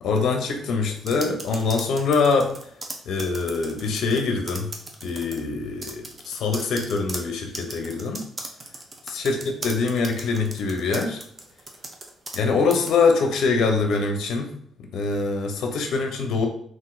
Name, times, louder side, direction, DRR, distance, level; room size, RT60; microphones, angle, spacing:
voice 1, 0.0-2.5 3.1-4.7 5.0-8.3 9.1-11.2 12.3-14.5 14.9-16.5, left 4 dB, 70° left, 4 dB, 0.5 m, -24 dB
sound 1, 1.0-4.2 4.5-5.4 5.8-12.4 12.7-12.9, right 2 dB, 30° right, 0.6 m, -37 dB
3.7 x 2.5 x 2.5 m, 0.64 s
cardioid pair, 90°, 0 cm